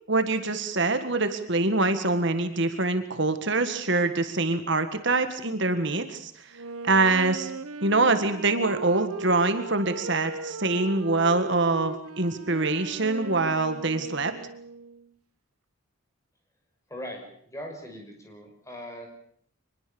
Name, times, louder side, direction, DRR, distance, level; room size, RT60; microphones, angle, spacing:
voice 1, 0.1-7.5 7.8-14.3, right 3 dB, 55° right, 8 dB, 1.7 m, -25 dB
Wind instrument woodwind instrument, 6.5-15.1, right 3 dB, 90° right, 1.3 m, -38 dB
voice 2, 16.9-19.1, equal, 15° left, 2 dB, 5.9 m, -40 dB
24.5 x 21.0 x 7.0 m, 0.65 s
head